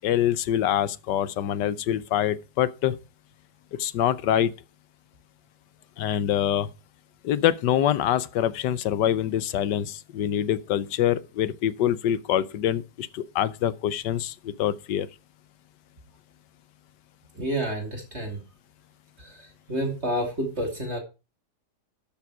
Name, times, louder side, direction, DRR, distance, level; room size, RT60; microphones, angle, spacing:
voice 1, 0.0-3.0 3.8-4.5 6.0-6.7 7.2-15.1, left 11 dB, 85° left, 1.4 m, -25 dB
voice 2, 17.3-18.4 19.2-21.0, right 1 dB, 40° right, 3.1 m, -29 dB
12.5 x 7.5 x 4.8 m
omnidirectional pair, 1.9 m